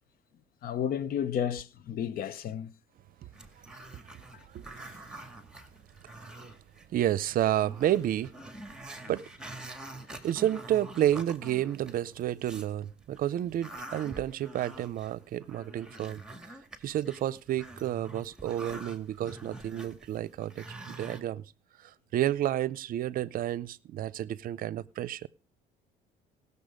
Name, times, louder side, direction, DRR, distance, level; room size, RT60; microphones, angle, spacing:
voice 1, 0.6-2.7 4.3-4.4, left 9 dB, 60° left, 0.9 m, -32 dB
Growling, 3.3-6.8 7.2-7.3 7.6-12.7 13.1-21.2, right 2 dB, 5° right, 1.9 m, -46 dB
voice 2, 4.5-4.9 6.9-8.3 9.1-9.2 10.2-16.2 16.8-21.4 21.8-25.3, right 12 dB, 60° right, 0.6 m, -30 dB
18.5 x 6.9 x 5.1 m
cardioid pair, 110°, 17 cm